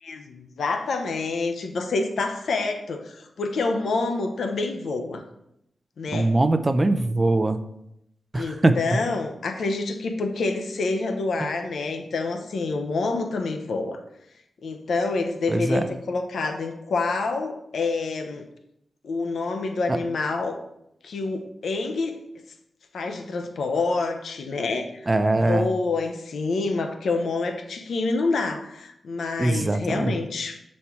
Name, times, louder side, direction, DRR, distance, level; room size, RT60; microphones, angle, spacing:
voice 1, 0.0-5.2 6.0-6.4 8.3-14.0 14.6-18.4 19.0-20.6 21.0-22.2 22.9-25.1 25.3-30.6, left 3 dB, 80° left, 6 dB, 0.8 m, -27 dB
voice 2, 6.1-7.6 8.3-8.8 15.5-15.8 19.9-20.0 25.1-25.7 29.4-30.2, right 2 dB, 20° right, 9 dB, 0.5 m, -21 dB
8.2 x 4.3 x 4.4 m, 0.80 s
wide cardioid pair, 125°, 0 cm